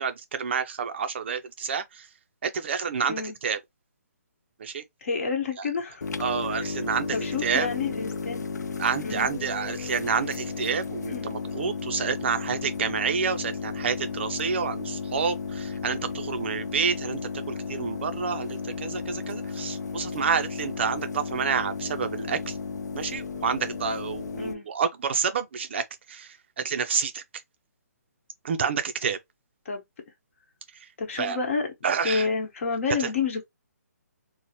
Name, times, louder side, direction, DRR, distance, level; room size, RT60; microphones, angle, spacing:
voice 1, 0.0-2.1 2.4-3.2 3.4-3.6 4.6-4.8 6.2-7.1 7.4-7.7 8.8-17.2 17.5-22.5 22.9-26.4 26.6-27.2 28.4-29.2 31.2-31.4 31.8-32.3 33.0-33.1, right 6 dB, 40° right, 0.4 m, -28 dB
voice 2, 5.0-6.1 6.5-6.7 7.1-8.5 9.0-9.3 11.1-11.3 24.4-24.7 29.6-29.8 31.0-31.7 32.0-33.4, left 5 dB, 50° left, 1.1 m, -29 dB
sound 1, 6.0-24.5, left 5 dB, 80° left, 0.5 m, -34 dB
2.8 x 2.1 x 2.9 m
hypercardioid pair, 160°, 9 cm